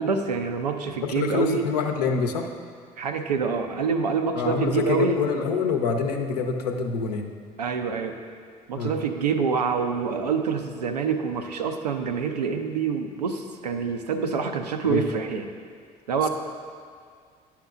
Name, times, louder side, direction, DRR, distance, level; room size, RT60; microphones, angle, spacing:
voice 1, 0.0-1.7 3.0-5.2 7.6-8.2 8.7-15.4 16.1-16.3, right 5 dB, 85° right, 6 dB, 0.4 m, -26 dB
voice 2, 1.1-2.5 4.3-7.3 8.7-9.0 14.9-15.1 16.2-16.3, left 5 dB, 80° left, 4 dB, 0.5 m, -26 dB
10.5 x 5.7 x 2.3 m, 2.1 s
figure-of-eight pair, 50°, 20 cm